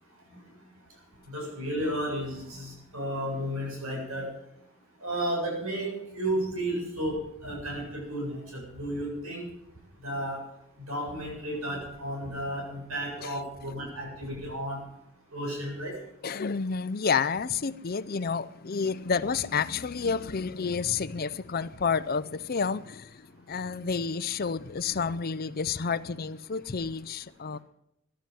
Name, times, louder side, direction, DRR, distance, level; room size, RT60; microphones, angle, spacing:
voice 1, 1.3-4.3 5.0-9.5 10.0-10.4 10.9-14.8 15.3-15.9, right 1 dB, 85° right, 7.8 m, -33 dB
voice 2, 16.2-27.6, left 5 dB, 45° left, 0.6 m, -30 dB
15.0 x 11.5 x 7.6 m
head